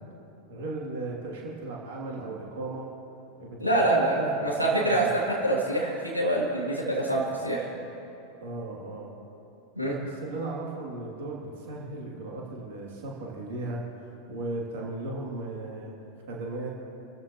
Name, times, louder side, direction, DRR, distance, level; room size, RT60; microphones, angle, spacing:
voice 1, 0.5-2.8 3.4-5.1 8.4-9.1 9.8-13.8 14.3-15.9 16.3-16.7, right 2 dB, 55° right, -3 dB, 3.0 m, -36 dB
voice 2, 3.6-7.7 9.7-9.9, right 1 dB, 90° right, -5 dB, 3.2 m, -25 dB
29.5 x 14.5 x 3.2 m, 3.0 s
figure-of-eight pair, 90°, 0 cm